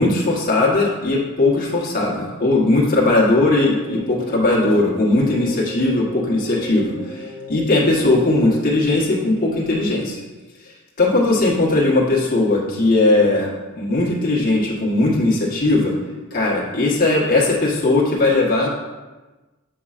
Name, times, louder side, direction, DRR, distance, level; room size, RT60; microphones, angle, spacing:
voice 1, 0.0-10.2 11.0-13.5 13.7-15.9 16.3-18.7, left 2 dB, 40° left, -4 dB, 1.2 m, -18 dB
sound 1, 2.7-9.9, left 2 dB, 20° left, 0.8 m, -37 dB
7.6 x 5.4 x 2.4 m, 1.2 s
head